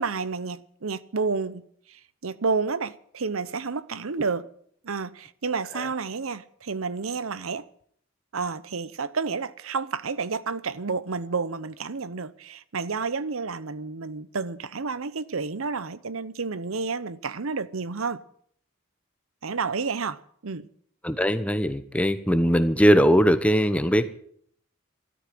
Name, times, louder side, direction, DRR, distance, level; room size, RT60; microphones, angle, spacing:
voice 1, 0.0-1.6 1.9-4.5 4.8-7.6 8.3-18.2 19.4-20.7, right 4 dB, 85° right, 0.9 m, -30 dB
voice 2, 21.0-24.1, equal, 5° left, 1.0 m, -20 dB
13.5 x 13.0 x 7.7 m
head